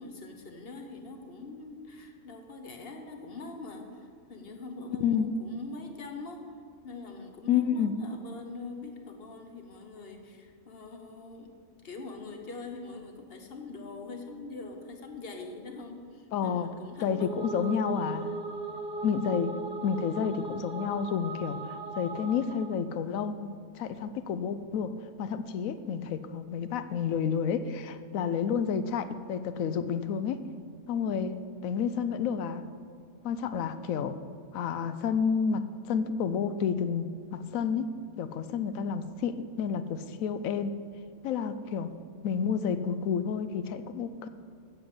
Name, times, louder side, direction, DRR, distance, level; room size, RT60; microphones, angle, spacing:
voice 1, 0.0-6.4 6.8-11.5 11.8-17.3 17.6-17.7, left 3 dB, 50° left, 4 dB, 1.2 m, -43 dB
voice 2, 7.5-7.9 16.3-16.7 17.0-18.4 19.0-30.5 30.9-32.7 33.2-34.2 34.5-40.8 41.2-41.9 42.2-44.3, left 7 dB, 90° left, 12 dB, 1.0 m, -30 dB
sound 1, 17.0-22.8, right 3 dB, 45° right, 1.1 m, -38 dB
8.0 x 7.7 x 7.3 m, 2.2 s
omnidirectional pair, 1.4 m